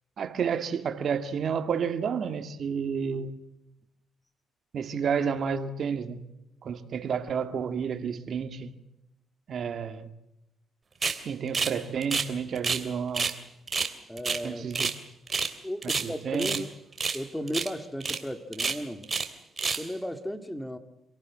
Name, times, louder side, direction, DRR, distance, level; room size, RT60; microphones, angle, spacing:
voice 1, 0.2-3.4 4.7-6.2 6.6-8.8 9.5-10.1 11.2-13.4 14.4-14.9 15.8-16.6, right 6 dB, 55° right, 2.2 m, -30 dB
sound 1, 11.0-11.2 11.5-11.8 12.0-12.9 13.1-13.4 13.7-15.0 15.3-15.6 15.8-16.6 17.0-17.2 17.5-17.7 18.0-18.2 18.5-19.3 19.6-19.9, right 5 dB, 35° right, 3.0 m, -29 dB
voice 2, 14.1-14.7 15.6-16.7 17.1-19.1 19.8-20.8, equal, 5° left, 2.3 m, -35 dB
27.5 x 18.0 x 7.7 m
cardioid pair, 90°, 0 cm